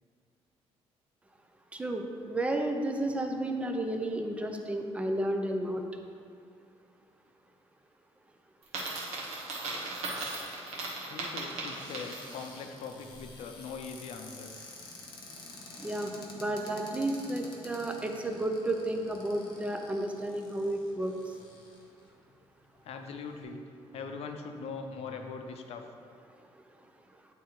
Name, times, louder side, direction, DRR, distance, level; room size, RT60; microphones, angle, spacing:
voice 1, 1.7-5.8 15.8-21.4, right 1 dB, 10° right, 4 dB, 0.4 m, -32 dB
Coin (dropping), 8.6-12.5, right 2 dB, 80° right, 1.3 m, -37 dB
voice 2, 11.1-14.6 22.8-23.6 23.9-25.9, left 5 dB, 65° left, 5 dB, 0.6 m, -41 dB
Cupboard open or close, 11.7-22.1 22.7-22.8 23.1-23.4, left 2 dB, 40° left, 1.1 m, -49 dB
8.7 x 3.6 x 4.4 m, 2.3 s
cardioid pair, 175°, 11 cm